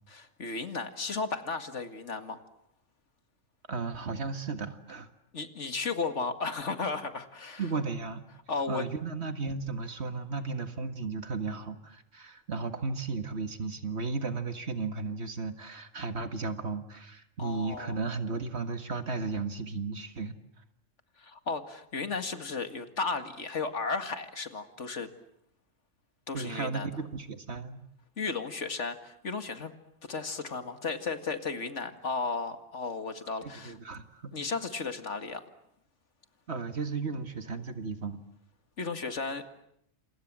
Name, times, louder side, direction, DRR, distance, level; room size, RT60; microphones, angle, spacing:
voice 1, 0.1-2.4 5.3-7.7 8.5-8.8 17.4-18.0 21.2-25.1 26.3-27.0 28.2-29.7 30.0-33.8 34.3-35.4 38.8-39.6, left 4 dB, 65° left, 9 dB, 2.3 m, -34 dB
voice 2, 3.7-5.1 7.6-8.2 8.7-20.4 26.3-27.8 33.6-34.3 36.5-38.2, right 4 dB, 60° right, 9 dB, 2.0 m, -34 dB
28.5 x 27.5 x 7.5 m, 0.75 s
omnidirectional pair, 1.3 m